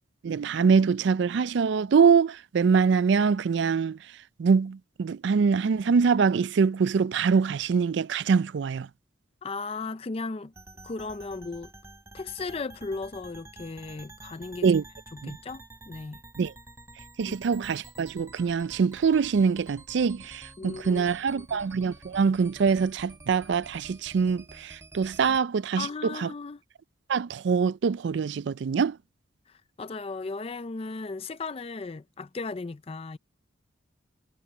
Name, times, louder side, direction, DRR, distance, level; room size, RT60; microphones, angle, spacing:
voice 1, 0.2-4.0 4.4-8.9 14.6-14.8 15.2-15.4 16.4-16.5 17.2-26.3 27.1-29.0, right 5 dB, 60° right, 0.4 m, -24 dB
voice 2, 9.4-10.5 10.8-11.7 12.1-14.7 15.1-16.2 17.2-17.4 20.6-21.1 21.3-21.6 25.3-25.4 25.8-26.6 29.5-33.2, left 3 dB, 30° left, 0.4 m, -36 dB
sound 1, 10.5-25.4, right 2 dB, 15° right, 4.7 m, -49 dB
head